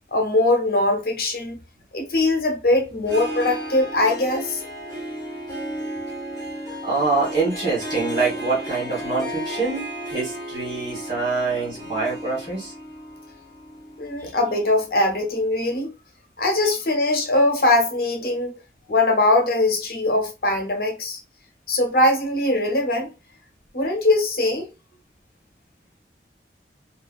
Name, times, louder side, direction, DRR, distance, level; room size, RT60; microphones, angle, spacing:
voice 1, 0.1-1.6 1.9-4.6 14.0-15.9 16.4-18.5 18.9-21.2 21.7-23.1 23.7-24.7, left 2 dB, 55° left, 0.7 m, -21 dB
Harp, 3.0-14.9, equal, 20° left, 1.0 m, -34 dB
voice 2, 6.8-12.7 14.2-14.3, right 3 dB, 30° right, 1.5 m, -25 dB
2.8 x 2.3 x 2.3 m
head